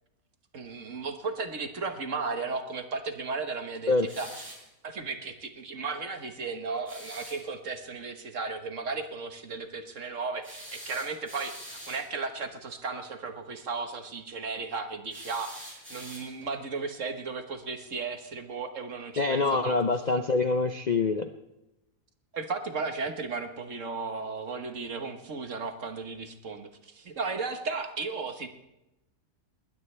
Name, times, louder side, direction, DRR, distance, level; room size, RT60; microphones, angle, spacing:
voice 1, 0.5-4.6 4.8-19.8 22.3-28.5, right 4 dB, 50° right, 7 dB, 1.6 m, -35 dB
sound 1, 4.1-4.7 6.9-7.4 10.4-12.1 15.1-16.5, equal, 5° right, 4.6 m, -45 dB
voice 2, 19.2-21.3, left 3 dB, 80° left, 8 dB, 0.4 m, -25 dB
20.5 x 20.0 x 3.3 m, 0.91 s
omnidirectional pair, 1.8 m